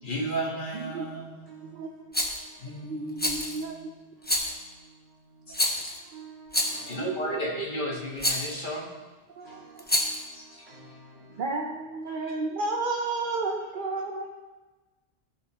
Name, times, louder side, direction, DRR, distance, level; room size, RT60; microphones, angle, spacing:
voice 1, 0.0-1.9 2.6-3.7 5.5-5.9 6.9-8.9 10.5-10.6 12.2-12.3, equal, 50° left, -2 dB, 1.7 m, -35 dB
voice 2, 0.7-1.0 1.6-1.9 2.6-3.9 6.9-7.7 9.3-9.8 10.3-10.4 11.4-14.3, right 3 dB, 50° right, 1 dB, 0.9 m, -32 dB
voice 3, 1.5-3.6 4.2-7.3 9.4-11.5 12.1-12.2 13.6-13.7, right 4 dB, 70° right, -6 dB, 2.7 m, -52 dB
Rattle, 2.1-2.4 3.2-3.6 4.2-4.6 5.5-6.0 6.5-6.9 8.2-8.5 9.8-10.3, left 1 dB, 10° left, 0.8 m, -27 dB
14.5 x 6.3 x 3.0 m, 1.2 s
omnidirectional pair, 1.1 m